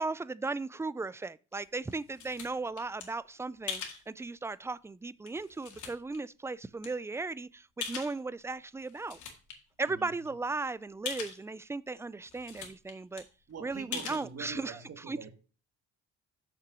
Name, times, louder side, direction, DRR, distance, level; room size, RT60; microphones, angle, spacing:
voice 1, 0.0-9.2 9.8-13.3 13.6-14.8 15.1-15.3, right 3 dB, 10° right, 0.3 m, -36 dB
sound 1, 1.5-3.0 3.7-4.0 4.7-4.8 5.3-6.2 6.8-6.9 7.8-8.4 8.8-9.5 9.9-10.0 10.2-10.3 11.0-11.4 12.0-12.1 12.2-12.9 13.2-13.3 13.9-14.2, left 7 dB, 75° left, 2.2 m, -40 dB
voice 2, 9.8-10.3 13.5-15.3, right 6 dB, 55° right, 1.8 m, -45 dB
6.8 x 5.7 x 6.2 m
cardioid pair, 90°, 30 cm